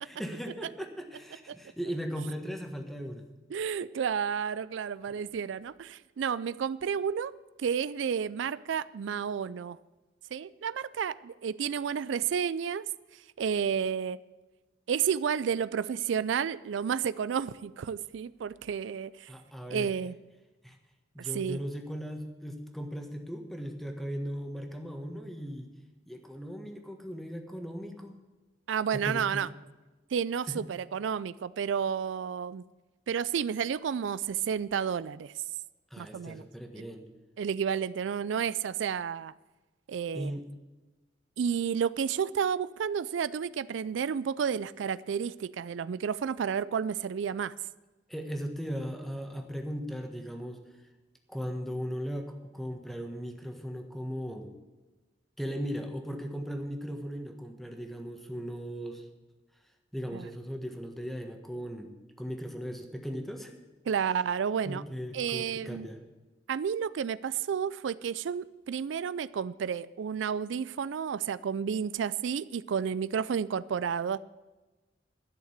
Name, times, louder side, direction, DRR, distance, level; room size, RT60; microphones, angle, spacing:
voice 1, 0.0-3.2 19.3-19.9 20.6-20.8 21.1-25.7 26.1-28.2 28.9-29.5 30.5-30.6 35.9-37.0 40.1-40.4 48.1-50.6 51.3-54.5 55.4-59.1 59.9-61.9 62.2-63.6 64.6-66.0, equal, ahead, 4 dB, 1.4 m, -37 dB
voice 2, 3.5-7.3 7.6-9.8 10.3-12.9 13.1-14.2 14.9-19.3 19.7-20.2 21.2-21.6 28.7-29.5 30.1-32.6 33.1-35.3 36.0-36.4 36.8-36.9 37.4-39.3 39.9-40.3 41.4-47.5 60.1-60.3 63.9-64.8 65.1-65.9 66.5-74.2, right 7 dB, 80° right, 18 dB, 0.4 m, -31 dB
12.0 x 6.6 x 9.4 m, 1.2 s
head